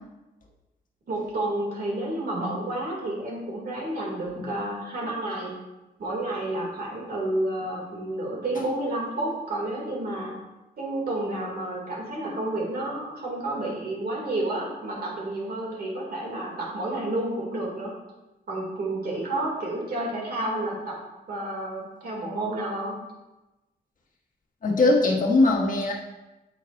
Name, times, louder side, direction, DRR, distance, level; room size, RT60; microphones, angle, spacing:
voice 1, 1.1-5.5 6.0-10.3 10.8-18.0 18.5-21.0 21.3-23.0, right 1 dB, 65° right, -3 dB, 2.7 m, -30 dB
voice 2, 24.6-25.9, left 2 dB, 50° left, -1 dB, 1.4 m, -21 dB
8.8 x 7.9 x 2.7 m, 1.0 s
wide cardioid pair, 110°, 17 cm